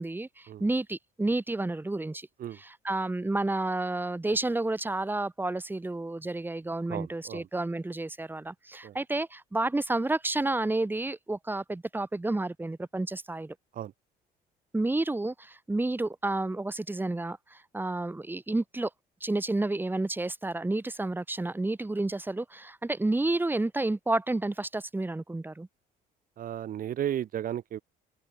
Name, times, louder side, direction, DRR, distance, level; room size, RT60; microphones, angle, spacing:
voice 1, 0.0-2.3 2.8-13.5 14.7-18.9 19.2-25.7, right 2 dB, 10° right, 2.9 m, -30 dB
voice 2, 6.9-7.5 8.8-9.0 13.7-13.9 26.4-27.8, right 11 dB, 55° right, 2.2 m, -34 dB
open air
cardioid pair, 110°, 17 cm